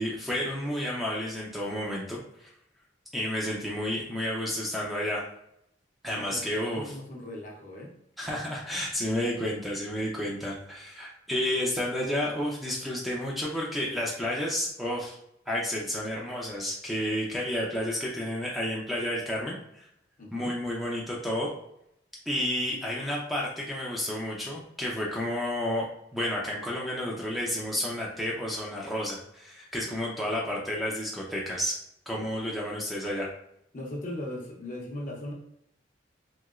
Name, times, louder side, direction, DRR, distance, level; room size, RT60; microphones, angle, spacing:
voice 1, 0.0-2.5 3.1-5.3 6.0-6.9 8.2-15.2 15.5-19.9 20.3-21.5 22.3-31.7 32.1-33.3, left 1 dB, ahead, -4 dB, 0.4 m, -31 dB
voice 2, 6.1-7.9 20.2-20.5 32.1-32.3 33.7-35.3, left 1 dB, 45° left, -1 dB, 0.7 m, -39 dB
3.0 x 2.8 x 2.3 m, 0.77 s
head